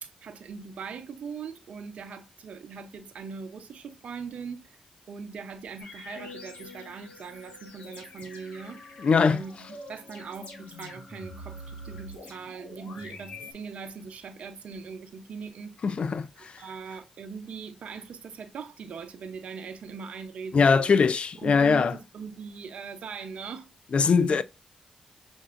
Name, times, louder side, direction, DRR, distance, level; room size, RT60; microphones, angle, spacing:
voice 1, 0.0-4.6 5.1-8.8 9.2-15.8 16.4-20.9 21.4-23.7 24.3-24.4, right 5 dB, 75° right, 0.7 m, -40 dB
sound 1, 5.8-13.5, left 1 dB, 85° left, 1.2 m, -45 dB
voice 2, 9.0-9.4 15.8-16.3 20.5-21.9 23.9-24.4, left 5 dB, 60° left, 0.4 m, -21 dB
6.7 x 2.6 x 2.5 m
supercardioid pair, 50°, 2 cm